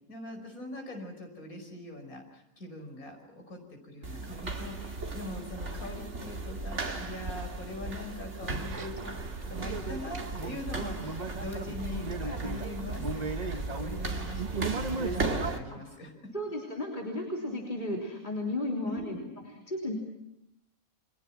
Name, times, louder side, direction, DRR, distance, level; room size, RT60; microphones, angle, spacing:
voice 1, 0.1-9.2 9.5-16.3 18.8-19.2, left 1 dB, 80° left, 3 dB, 6.0 m, -42 dB
sound 1, 4.0-15.6, right 2 dB, 55° right, 2.8 m, -37 dB
sound 2, 8.5-15.5, right 4 dB, 30° right, 1.1 m, -36 dB
voice 2, 16.3-19.2 19.4-19.9, left 1 dB, 35° left, 0 dB, 3.7 m, -34 dB
29.5 x 24.0 x 6.0 m, 0.83 s
omnidirectional pair, 1.5 m